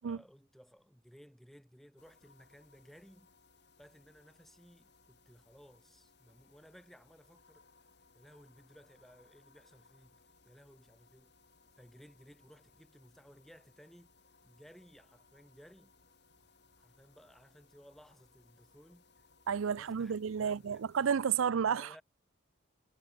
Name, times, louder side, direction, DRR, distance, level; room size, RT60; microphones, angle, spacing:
voice 1, 0.0-3.3 3.8-7.7 8.1-11.3 11.8-14.1 14.4-15.9 16.8-19.0 19.7-20.9 21.6-22.0, equal, ahead, 7.6 m, -59 dB
sound 1, 2.0-21.1, left 4 dB, 55° left, 4.7 m, -66 dB
voice 2, 19.5-22.0, right 7 dB, 80° right, 0.4 m, -31 dB
head